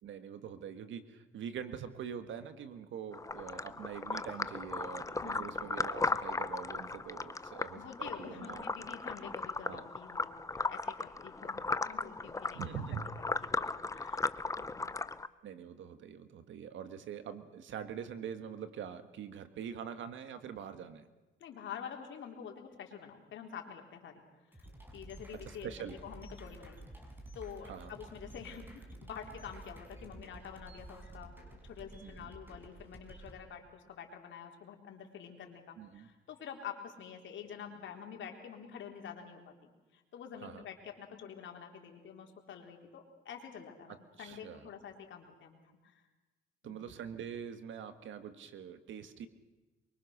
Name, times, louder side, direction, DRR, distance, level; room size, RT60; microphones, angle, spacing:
voice 1, 0.0-8.6 9.6-9.9 12.5-13.1 15.4-21.1 25.3-26.0 27.6-27.9 32.0-32.3 35.8-36.1 40.4-40.6 44.2-44.7 46.6-49.3, right 8 dB, 75° right, 11 dB, 1.8 m, -44 dB
sound 1, 3.1-15.3, left 3 dB, 15° left, 0.7 m, -37 dB
voice 2, 5.2-5.6 7.7-12.7 13.5-14.3 14.6-14.9 21.4-24.2 24.5-24.7 24.9-26.8 27.3-45.6 45.8-46.0 46.6-46.9, left 7 dB, 70° left, 3 dB, 3.8 m, -48 dB
sound 2, 24.5-33.4, right 1 dB, 10° right, 5.4 m, -51 dB
24.0 x 23.5 x 6.6 m, 1.2 s
cardioid pair, 90°, 20 cm